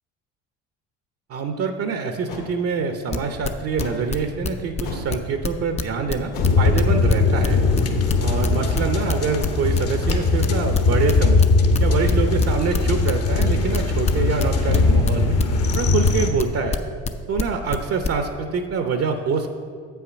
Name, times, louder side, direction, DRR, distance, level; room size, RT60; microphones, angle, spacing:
voice 1, 1.3-7.6 8.2-11.5 11.8-15.4 15.7-16.8 17.3-19.5, right 5 dB, 45° right, 6 dB, 0.7 m, -25 dB
sound 1, 2.3-2.5 3.8-4.1 4.8-5.2 6.3-6.7 8.2-8.5 10.1-10.2, left 3 dB, 65° left, 1.8 m, -33 dB
sound 2, 3.1-4.8 5.1-9.1 9.4-13.1 13.4-18.1, left 4 dB, 20° left, 0.5 m, -26 dB
sound 3, 6.4-16.3, left 3 dB, 45° left, 1.1 m, -20 dB
7.8 x 5.8 x 5.2 m, 2.1 s
supercardioid pair, 80°, 34 cm